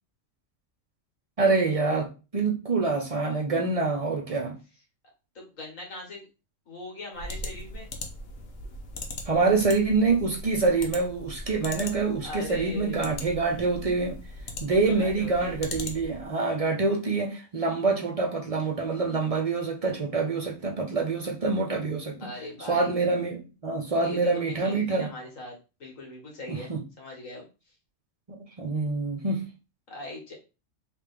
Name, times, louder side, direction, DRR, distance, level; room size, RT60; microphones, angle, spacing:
voice 1, 1.4-4.6 9.3-14.2 14.6-22.3 22.7-25.1 26.5-26.8 28.3-29.4, right 3 dB, 45° right, 0.4 m, -26 dB
voice 2, 5.4-6.3 6.7-7.9 12.2-13.3 14.7-15.6 22.2-22.9 24.0-25.5 25.8-26.7 27.0-27.4 29.9-30.3, left 2 dB, 90° left, 1.7 m, -40 dB
sound 1, 7.1-16.3, left 2 dB, 55° left, 0.9 m, -40 dB
3.4 x 2.9 x 3.4 m
omnidirectional pair, 1.3 m